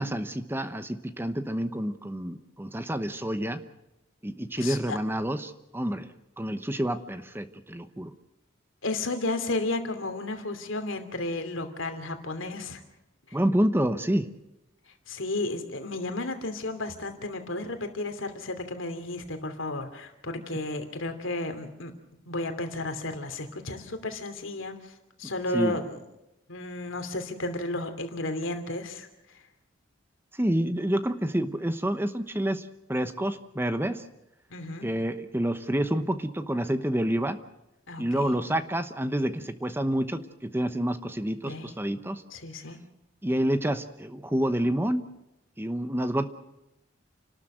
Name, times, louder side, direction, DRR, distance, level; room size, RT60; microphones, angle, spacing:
voice 1, 0.0-3.6 4.2-8.1 13.3-14.3 25.5-25.7 30.4-34.0 34.8-37.4 38.0-42.2 43.2-45.0 45.6-46.3, right 1 dB, 10° right, 10 dB, 0.9 m, -28 dB
voice 2, 4.6-5.0 8.8-12.8 13.3-13.4 14.9-21.9 22.2-24.9 25.2-26.0 26.5-29.1 34.5-34.9 37.9-38.3 41.4-41.7 42.3-42.8, left 2 dB, 90° left, 7 dB, 2.8 m, -33 dB
29.5 x 12.5 x 7.9 m, 0.93 s
head